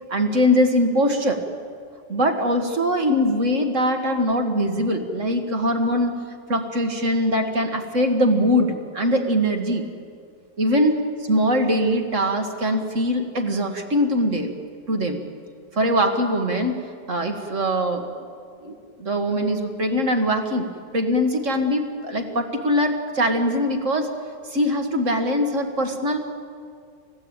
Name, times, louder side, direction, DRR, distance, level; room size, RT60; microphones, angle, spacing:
voice 1, 0.1-1.4 2.1-6.2 6.5-9.9 10.6-10.9 11.3-14.5 14.9-15.2 15.7-16.8 17.1-18.0 18.6-20.7 20.9-24.1 24.5-26.2, equal, 45° right, 5 dB, 2.2 m, -22 dB
29.5 x 15.5 x 9.0 m, 2.2 s
omnidirectional pair, 1.9 m